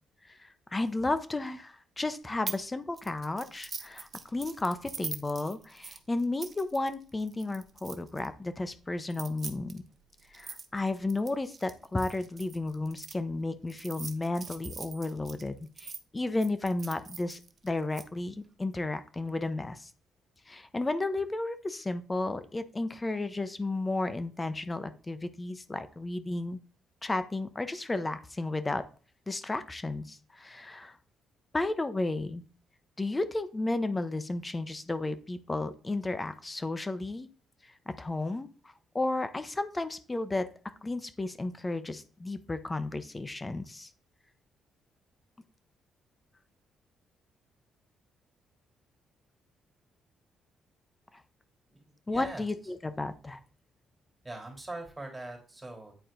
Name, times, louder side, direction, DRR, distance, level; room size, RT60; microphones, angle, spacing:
voice 1, 0.3-9.9 10.3-19.9 20.5-26.6 27.0-28.8 29.3-31.0 31.5-32.4 33.0-37.3 37.9-38.5 38.9-40.5 40.8-43.9 52.1-53.4, left 2 dB, 20° left, 12 dB, 0.8 m, -33 dB
sound 1, 2.5-2.7 3.0-8.3 9.0-13.1 13.7-16.0 16.4-18.0, right 5 dB, 40° right, 0.8 m, -43 dB
voice 2, 52.1-52.4 54.2-55.9, right 2 dB, 15° right, 2 dB, 3.1 m, -41 dB
9.3 x 4.3 x 3.8 m, 0.39 s
cardioid pair, 90°, 0 cm